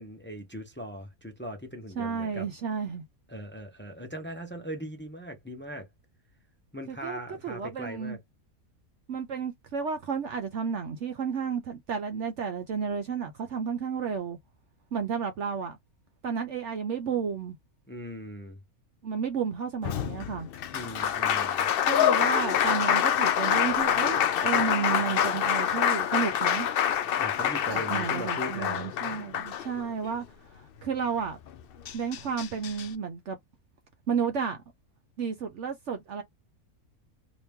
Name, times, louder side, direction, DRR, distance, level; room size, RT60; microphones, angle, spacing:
voice 1, 0.0-2.5 3.3-5.9 6.7-8.2 17.9-18.6 20.7-21.7 27.2-28.9, equal, 10° left, 0.8 m, -39 dB
voice 2, 2.0-3.0 6.9-8.2 9.1-14.4 14.9-15.8 16.2-17.6 19.0-20.5 21.9-26.7 27.7-30.2 30.5-31.4 31.9-33.4 34.1-34.6 35.2-36.2, right 6 dB, 60° right, 0.9 m, -32 dB
Applause, 19.8-30.1 31.5-31.6 31.9-32.9, left 9 dB, 80° left, 0.5 m, -26 dB
2.9 x 2.7 x 3.5 m
omnidirectional pair, 1.6 m